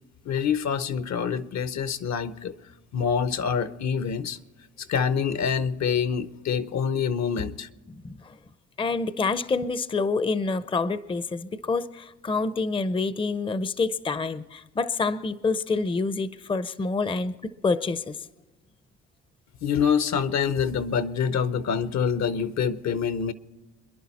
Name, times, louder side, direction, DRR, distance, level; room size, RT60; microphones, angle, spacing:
voice 1, 0.3-2.5 2.9-4.4 4.9-7.7 19.6-23.3, left 7 dB, 65° left, 0.9 m, -26 dB
voice 2, 7.9-8.4 8.8-18.2, left 4 dB, 15° left, 0.6 m, -27 dB
26.5 x 11.0 x 4.2 m
cardioid pair, 90°, 30 cm